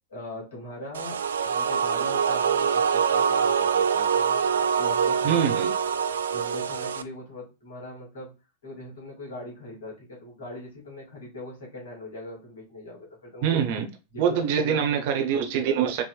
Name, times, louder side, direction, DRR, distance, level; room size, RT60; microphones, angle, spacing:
voice 1, 0.1-5.8 6.3-8.3 8.6-13.6 14.1-15.0, left 1 dB, 60° left, 2.4 m, -41 dB
sound 1, 0.9-7.0, right 7 dB, 65° right, 0.3 m, -24 dB
voice 2, 5.2-5.7 13.4-13.9 14.2-16.0, right 8 dB, 50° right, 0.7 m, -24 dB
4.8 x 3.0 x 2.3 m
figure-of-eight pair, 90°, 0 cm